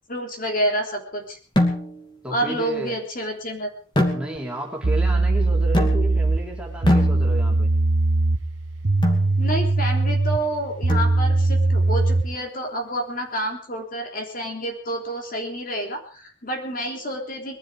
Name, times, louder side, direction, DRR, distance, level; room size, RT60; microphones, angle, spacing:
voice 1, 0.1-1.4 2.3-3.7 9.4-17.6, right 1 dB, 45° left, 3 dB, 3.5 m, -28 dB
sound 1, 1.6-2.2 4.0-4.7 5.7-6.3 6.9-7.7 9.0-9.4 10.9-11.5, left 1 dB, 25° left, 2.6 m, -24 dB
voice 2, 2.2-3.0 4.1-7.7, equal, 5° right, -1 dB, 3.4 m, -32 dB
sound 2, 4.4-4.5 4.8-12.4, right 2 dB, 90° right, 1.2 m, -21 dB
22.0 x 12.0 x 5.0 m, 0.41 s
head